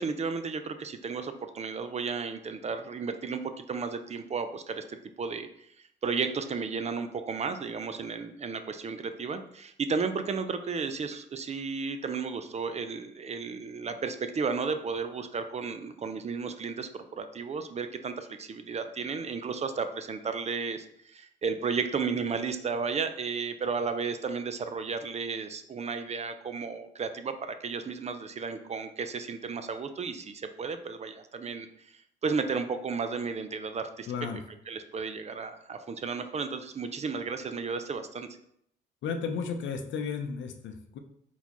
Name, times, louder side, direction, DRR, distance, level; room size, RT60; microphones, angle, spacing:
voice 1, 0.0-5.5 6.0-34.1 34.7-38.3, right 5 dB, 35° right, 9 dB, 0.4 m, -33 dB
voice 2, 34.1-34.4 39.0-41.0, left 6 dB, 70° left, 6 dB, 0.6 m, -33 dB
4.1 x 4.0 x 3.0 m, 0.71 s
cardioid pair, 90°, 20 cm